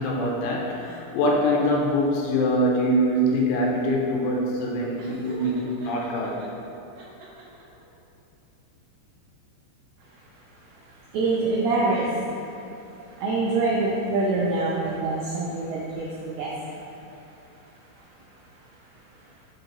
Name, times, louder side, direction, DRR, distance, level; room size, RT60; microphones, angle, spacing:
voice 1, 0.0-6.4, equal, 90° left, -2 dB, 3.2 m, -24 dB
Laughter, 5.0-6.5 6.9-7.8, equal, 65° right, 1.7 m, -42 dB
voice 2, 10.6-12.7 13.1-16.9 18.7-18.8 19.1-19.2, right 3 dB, 85° right, -5 dB, 2.2 m, -26 dB
6.7 x 4.5 x 4.0 m, 2.9 s
omnidirectional pair, 5.4 m